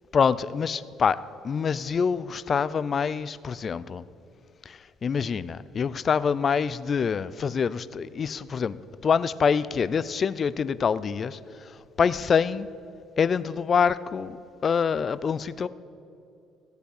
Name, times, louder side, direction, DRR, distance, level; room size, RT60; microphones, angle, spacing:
voice 1, 0.1-1.2 1.4-4.0 4.7-11.4 12.0-12.7 13.2-14.4 14.6-15.7, left 6 dB, 40° left, 17 dB, 0.4 m, -25 dB
15.0 x 8.0 x 6.5 m, 2.6 s
cardioid pair, 95°, 0 cm